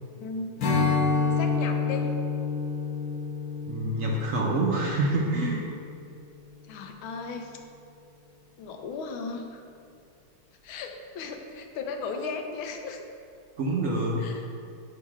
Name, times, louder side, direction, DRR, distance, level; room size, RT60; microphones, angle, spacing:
voice 1, 0.2-0.5 1.4-2.1 6.7-7.6 8.6-9.6 10.6-13.0 14.2-14.5, left 4 dB, 80° left, 4 dB, 1.5 m, -36 dB
Strum, 0.6-6.0, left 4 dB, 50° left, 1.3 m, -28 dB
voice 2, 3.7-5.6 13.6-14.2, right 2 dB, 65° right, -2 dB, 0.8 m, -26 dB
5.8 x 5.3 x 4.8 m, 2.4 s
omnidirectional pair, 2.3 m